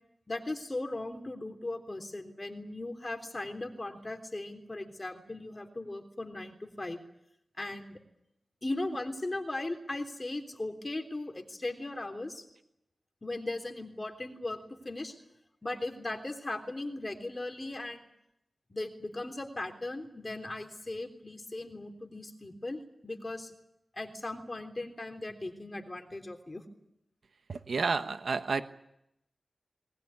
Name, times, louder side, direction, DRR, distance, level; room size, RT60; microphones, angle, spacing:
voice 1, 0.3-7.0 7.6-8.0 8.6-12.5 13.2-14.6 14.8-15.2 15.6-18.1 18.7-23.5 23.9-26.6, left 2 dB, 30° left, 5 dB, 3.5 m, -38 dB
voice 2, 27.5-28.6, right 4 dB, 85° right, 9 dB, 1.1 m, -30 dB
21.0 x 20.0 x 9.8 m, 0.79 s
wide cardioid pair, 80°, 0 cm